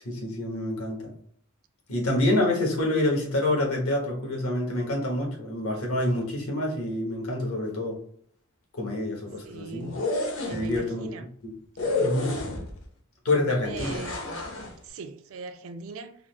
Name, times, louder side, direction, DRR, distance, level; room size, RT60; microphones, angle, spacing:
voice 1, 0.0-1.1 1.9-8.0 8.7-10.0 10.5-11.1 11.4-11.6 12.0-12.4 13.2-14.0, left 1 dB, 80° left, 1.2 m, -27 dB
voice 2, 9.4-10.0 10.4-11.2 13.3-14.2 14.8-16.2, right 4 dB, 65° right, 0.4 m, -40 dB
sound 1, 9.8-10.8 11.8-12.8 13.7-14.7, left 3 dB, 65° left, 0.8 m, -30 dB
3.7 x 2.1 x 3.1 m
head